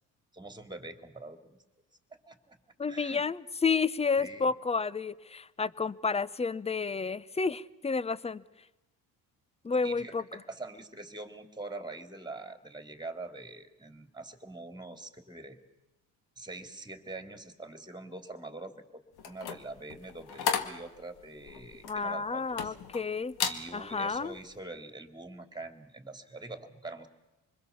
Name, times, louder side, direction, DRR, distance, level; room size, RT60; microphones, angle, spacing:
voice 1, 0.3-1.6 2.3-2.6 2.9-3.2 4.2-4.5 9.8-15.6 16.4-22.7 23.4-27.1, right 2 dB, 10° right, 7 dB, 2.9 m, -44 dB
voice 2, 2.8-8.4 9.6-10.2 21.9-23.3 23.7-24.3, left 5 dB, 15° left, 19 dB, 0.8 m, -30 dB
sound 1, 19.2-23.0 23.3-23.6 24.1-24.4, left 7 dB, 65° left, 2.0 m, -34 dB
26.0 x 21.0 x 7.2 m, 1.0 s
supercardioid pair, 70°, 41 cm